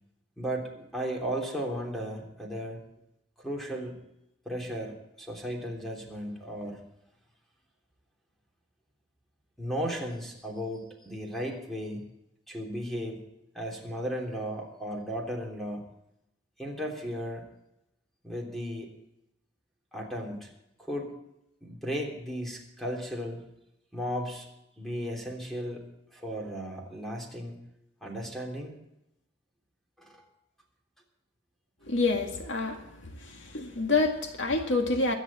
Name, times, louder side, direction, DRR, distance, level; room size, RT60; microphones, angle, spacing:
voice 1, 0.4-2.8 3.4-4.0 4.4-6.8 9.6-12.1 12.5-13.2 13.5-15.8 16.6-17.4 18.2-18.9 19.9-20.5 20.8-21.1 21.6-23.4 23.9-24.5 24.8-25.8 26.1-27.6 28.0-28.7 30.0-30.2, equal, ahead, 0 dB, 3.3 m, -35 dB
voice 2, 31.9-32.9 33.2-35.1, left 3 dB, 75° left, 4 dB, 2.0 m, -27 dB
23.5 x 10.0 x 4.2 m, 0.85 s
head